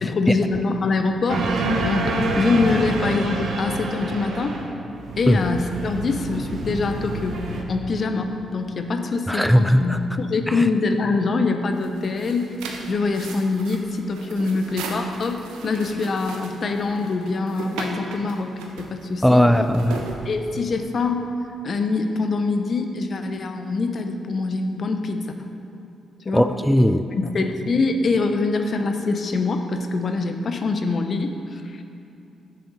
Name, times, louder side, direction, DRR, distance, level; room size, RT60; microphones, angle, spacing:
voice 1, 0.0-4.6 5.2-12.5 12.9-19.5 20.2-21.3 21.6-25.3 26.2-26.5 27.1-31.8, left 3 dB, 55° left, 6 dB, 0.8 m, -24 dB
sound 1, 1.3-4.7 4.9-7.6, right 2 dB, 65° right, 1.1 m, -27 dB
voice 2, 9.3-10.0 10.5-10.6 19.2-20.1 26.3-27.0, equal, ahead, 9 dB, 0.4 m, -18 dB
sound 2, 11.7-20.9, right 3 dB, 80° right, 0.9 m, -37 dB
10.0 x 7.6 x 4.1 m, 2.6 s
hypercardioid pair, 45°, 0 cm